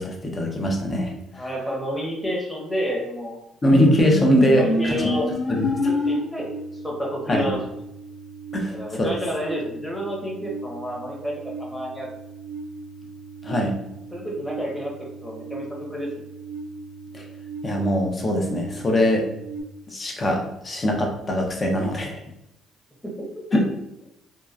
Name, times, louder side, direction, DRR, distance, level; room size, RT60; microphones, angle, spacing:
voice 1, 0.0-1.1 3.6-4.9 5.5-5.7 7.3-7.5 8.5-9.1 13.4-13.7 17.1-17.2 17.6-19.3 19.9-22.2 23.5-23.7, equal, 35° left, 1 dB, 0.7 m, -21 dB
voice 2, 1.3-3.4 4.6-5.3 5.9-6.5 6.8-7.6 8.7-12.1 14.1-14.9 15.2-16.1 23.0-23.6, equal, 5° left, -3 dB, 1.0 m, -30 dB
sound 1, 3.7-19.6, left 1 dB, 50° left, 1.0 m, -32 dB
2.8 x 2.3 x 2.4 m, 0.84 s
supercardioid pair, 75°, 0 cm